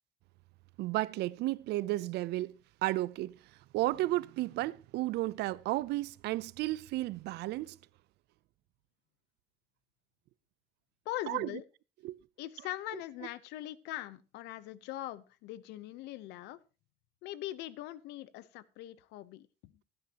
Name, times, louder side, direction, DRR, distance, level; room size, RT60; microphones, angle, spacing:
voice 1, 0.8-2.6 2.8-3.4 3.7-7.8 11.3-11.5 12.0-12.2, right 17 dB, 80° right, 0.5 m, -33 dB
voice 2, 11.0-11.6 12.4-16.6 17.2-19.7, left 15 dB, 90° left, 0.8 m, -41 dB
16.5 x 9.7 x 2.9 m
cardioid pair, 110°, 17 cm